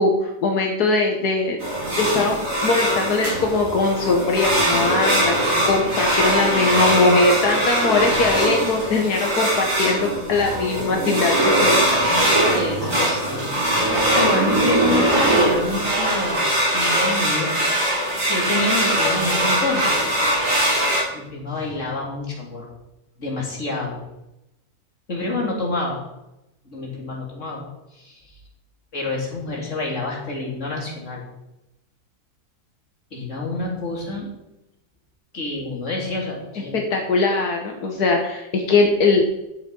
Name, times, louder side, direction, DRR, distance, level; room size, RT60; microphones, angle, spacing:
voice 1, 0.0-1.6 2.0-11.8 36.7-39.2, left 3 dB, 85° left, 2 dB, 1.8 m, -21 dB
sound 1, 1.6-21.0, right 1 dB, 55° right, 4.1 m, -21 dB
voice 2, 12.5-17.5 18.2-20.0 21.1-22.7 23.2-24.0 25.1-26.0 26.6-27.6 27.9-28.4 28.9-31.2 33.1-34.3 35.3-36.8, left 2 dB, 50° left, -2 dB, 3.3 m, -28 dB
12.0 x 7.8 x 5.4 m, 0.92 s
omnidirectional pair, 1.6 m